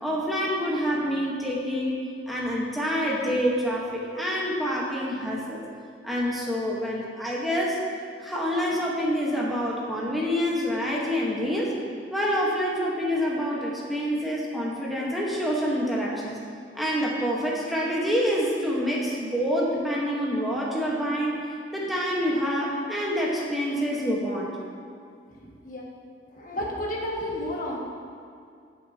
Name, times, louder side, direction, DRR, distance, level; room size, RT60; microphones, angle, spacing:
voice 1, 0.0-2.0 2.3-5.6 6.0-7.8 8.2-11.7 12.1-16.4 16.7-21.4 21.7-24.5, equal, ahead, -5 dB, 1.2 m, -27 dB
voice 2, 26.4-27.8, left 1 dB, 45° left, -3 dB, 1.7 m, -31 dB
19.5 x 6.5 x 2.8 m, 2.3 s
head